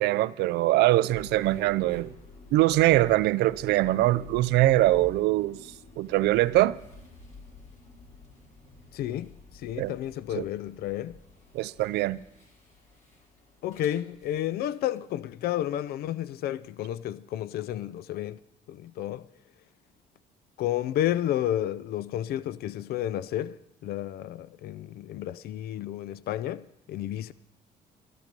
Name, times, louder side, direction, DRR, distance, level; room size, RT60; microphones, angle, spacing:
voice 1, 0.0-2.1 2.5-5.6 6.0-6.8 9.8-9.9 10.3-10.4 11.5-12.2, right 16 dB, 80° right, 0.5 m, -23 dB
sound 1, 1.1-15.0, left 3 dB, 45° left, 4.4 m, -51 dB
voice 2, 8.9-11.2 13.6-18.4 18.7-19.3 20.6-27.3, left 12 dB, 65° left, 0.5 m, -31 dB
13.5 x 13.5 x 5.2 m
cardioid pair, 110°, 17 cm